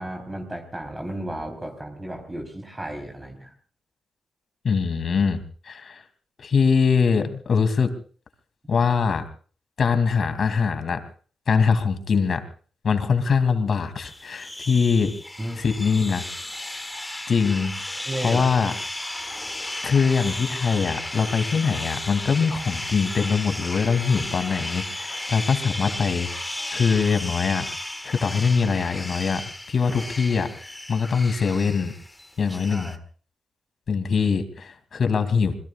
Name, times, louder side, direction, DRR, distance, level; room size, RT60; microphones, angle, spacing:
voice 1, 0.0-3.5 15.4-15.6 18.1-18.5 32.5-33.0, right 1 dB, 20° right, 3 dB, 3.7 m, -33 dB
voice 2, 4.6-6.0 6.4-7.9 8.7-9.2 9.8-11.0 11.5-12.4 12.8-15.1 15.6-16.3 17.3-17.7 18.2-18.7 19.8-26.3 26.7-27.7 28.0-29.4 29.7-30.5 30.9-31.9 32.4-33.0 33.9-35.5, left 5 dB, 55° left, 9 dB, 2.7 m, -22 dB
sound 1, 14.0-33.0, left 1 dB, 10° left, 1.7 m, -34 dB
27.5 x 21.5 x 2.4 m, 0.41 s
cardioid pair, 95°, 0 cm